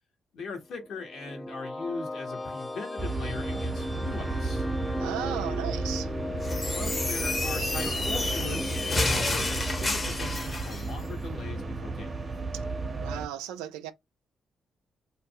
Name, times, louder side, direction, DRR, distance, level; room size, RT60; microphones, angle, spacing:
voice 1, 0.3-4.7 6.7-12.1, left 4 dB, 70° left, 1.0 m, -40 dB
sound 1, 0.8-11.7, left 1 dB, 20° left, 0.4 m, -38 dB
sound 2, 3.0-13.3, right 3 dB, 40° right, 0.6 m, -33 dB
voice 2, 5.0-6.1 6.7-6.8 13.0-13.9, right 12 dB, 80° right, 0.3 m, -35 dB
sound 3, 6.4-10.9, left 2 dB, 40° left, 0.8 m, -30 dB
2.3 x 2.0 x 3.6 m
hypercardioid pair, 40°, 0 cm